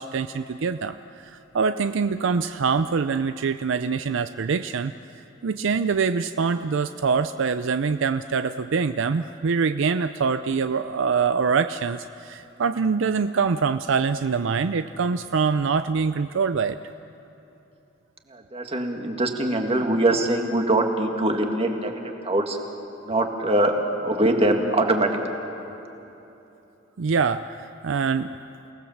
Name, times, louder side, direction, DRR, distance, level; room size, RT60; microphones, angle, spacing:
voice 1, 0.0-4.9 5.4-16.8 27.0-27.6 27.8-28.3, right 5 dB, 65° right, 11 dB, 0.5 m, -24 dB
voice 2, 18.3-21.9 22.2-22.6 23.0-23.7 24.0-25.1, right 1 dB, 30° right, 3 dB, 2.0 m, -22 dB
29.5 x 18.5 x 7.3 m, 3.0 s
head